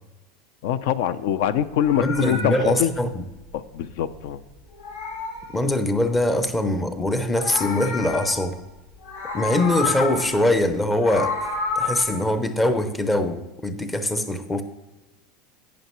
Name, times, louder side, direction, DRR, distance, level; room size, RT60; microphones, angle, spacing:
voice 1, 0.6-2.9 3.5-4.4, left 10 dB, 65° left, 15 dB, 0.5 m, -24 dB
Meow, 1.6-4.3 4.6-6.3 7.1-8.7 9.0-10.4 10.8-12.1, left 4 dB, 90° left, 2.6 m, -30 dB
voice 2, 2.0-3.2 5.5-8.6 9.3-11.3 11.8-14.6, left 1 dB, 10° left, 9 dB, 0.6 m, -22 dB
11.0 x 9.1 x 3.0 m, 1.1 s
supercardioid pair, 170°, 0 cm